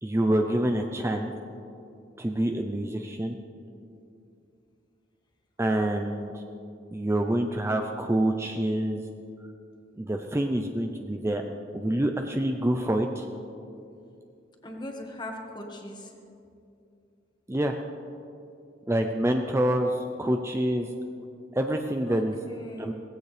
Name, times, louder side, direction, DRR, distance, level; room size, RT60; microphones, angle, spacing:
voice 1, 0.0-1.3 2.2-3.4 5.6-6.4 6.9-9.0 10.0-11.4 11.7-13.3 17.5-17.8 18.9-20.9 21.5-22.4 22.8-22.9, right 1 dB, 15° right, 4 dB, 0.5 m, -26 dB
voice 2, 14.6-16.1 22.0-22.9, left 1 dB, 25° left, 1 dB, 1.6 m, -40 dB
18.0 x 15.5 x 3.3 m, 2.6 s
head